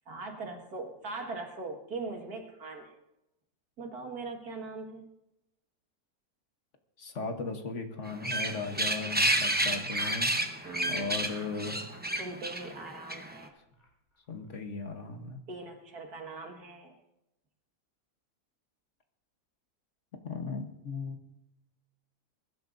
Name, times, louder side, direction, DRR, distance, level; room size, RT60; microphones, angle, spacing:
voice 1, 0.1-2.9 3.8-5.1 7.2-7.3 10.6-11.2 12.2-13.5 15.5-16.9, right 3 dB, 80° right, 3 dB, 2.3 m, -41 dB
voice 2, 7.0-10.4 10.9-11.8 14.3-15.4 20.2-21.2, left 4 dB, 55° left, 5 dB, 1.4 m, -37 dB
sound 1, 8.1-13.4, right 1 dB, 10° right, 0.6 m, -30 dB
Laughter, 8.4-10.2 10.6-10.9 11.2-11.5 11.8-12.3 12.6-12.7 13.0-13.1 13.4-13.5 13.7-13.9 14.1-14.5, equal, 30° left, 3.7 m, -53 dB
22.0 x 12.0 x 2.6 m, 0.92 s
omnidirectional pair, 1.6 m